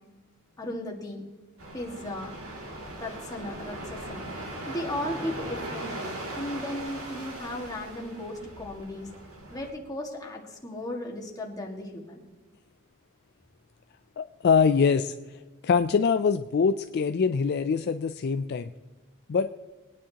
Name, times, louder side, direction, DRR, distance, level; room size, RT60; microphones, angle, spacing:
voice 1, 0.6-1.3 1.7-2.3 3.0-9.1 9.5-12.2, left 1 dB, 15° left, -1 dB, 1.8 m, -36 dB
sound 1, 1.6-9.7, right 1 dB, 70° right, 2.5 m, -39 dB
voice 2, 14.2-15.1 15.6-18.7 19.3-19.5, left 5 dB, 50° left, 9 dB, 0.3 m, -24 dB
21.5 x 9.7 x 2.9 m, 1.3 s
head